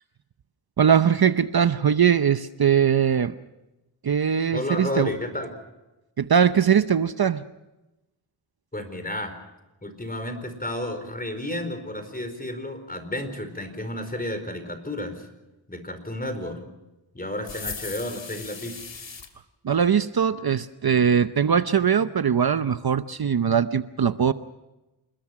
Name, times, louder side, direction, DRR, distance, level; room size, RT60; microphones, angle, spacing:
voice 1, 0.8-3.3 4.0-5.1 6.2-7.4 19.6-24.3, right 7 dB, 55° right, 12 dB, 0.8 m, -21 dB
voice 2, 4.5-5.5 8.7-9.3 9.8-15.3 15.7-16.6 17.1-18.8, left 1 dB, 20° left, 8 dB, 4.6 m, -32 dB
sound 1, 17.4-19.3, left 5 dB, 75° left, 2.9 m, -37 dB
28.0 x 21.0 x 5.9 m, 1.0 s
wide cardioid pair, 105°, 45 cm